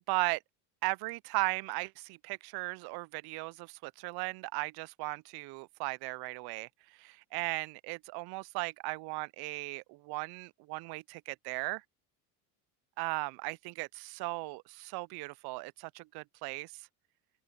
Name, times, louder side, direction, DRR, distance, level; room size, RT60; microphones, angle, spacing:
voice 1, 0.1-0.4 0.8-6.7 7.0-11.8 13.0-16.7, right 25 dB, 55° right, 0.5 m, -37 dB
open air
supercardioid pair, 105°, 48 cm